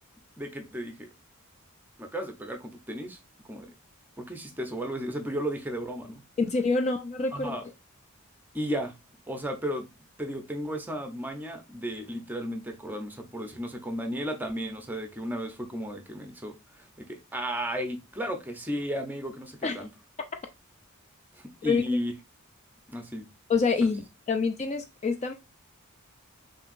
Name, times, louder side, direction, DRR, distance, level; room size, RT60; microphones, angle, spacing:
voice 1, 0.4-1.1 2.0-3.2 3.5-3.7 4.2-6.2 7.3-7.6 8.5-8.9 9.3-9.9 10.2-19.9 21.4-22.1 22.9-23.3 23.8-23.9, equal, 10° right, 0.7 m, -34 dB
voice 2, 6.4-7.6 19.6-19.8 21.7-21.8 23.5-25.3, left 4 dB, 30° left, 0.4 m, -26 dB
5.6 x 2.7 x 2.5 m
head